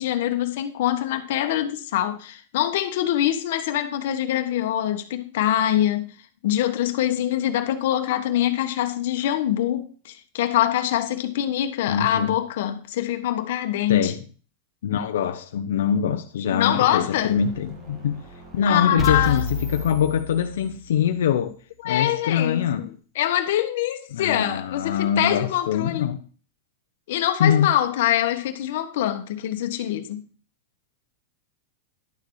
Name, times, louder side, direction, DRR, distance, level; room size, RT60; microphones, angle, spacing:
voice 1, 0.0-6.1 6.4-14.1 16.5-17.4 18.7-19.5 21.8-22.9 23.1-26.2 27.1-30.2, left 12 dB, 55° left, 1.3 m, -24 dB
voice 2, 11.9-12.3 13.9-14.2 14.8-18.2 18.5-21.6 21.8-22.9 24.1-26.2 27.4-27.7, left 8 dB, 85° left, 0.7 m, -23 dB
sound 1, 17.1-20.4, right 2 dB, 25° right, 2.0 m, -47 dB
sound 2, 19.0-21.0, left 2 dB, 5° right, 1.3 m, -29 dB
11.0 x 6.7 x 4.8 m
supercardioid pair, 175°, 0 cm